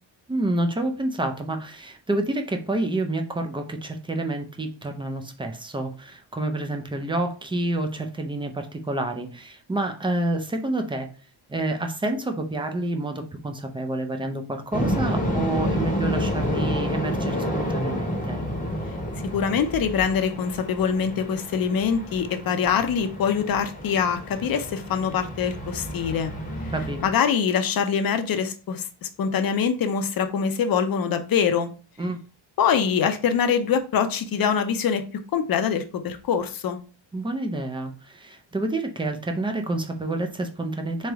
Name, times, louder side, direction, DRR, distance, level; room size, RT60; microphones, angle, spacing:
voice 1, 0.3-11.1 11.5-18.4 26.7-27.0 32.0-32.2 37.1-41.1, right 2 dB, 10° right, 0.4 m, -28 dB
sound 1, 14.7-27.1, equal, 15° left, 0.8 m, -30 dB
voice 2, 19.3-26.3 27.0-31.7 32.6-35.0 35.3-36.8, left 7 dB, 50° left, 0.6 m, -24 dB
3.9 x 3.3 x 3.4 m
wide cardioid pair, 165°, 47 cm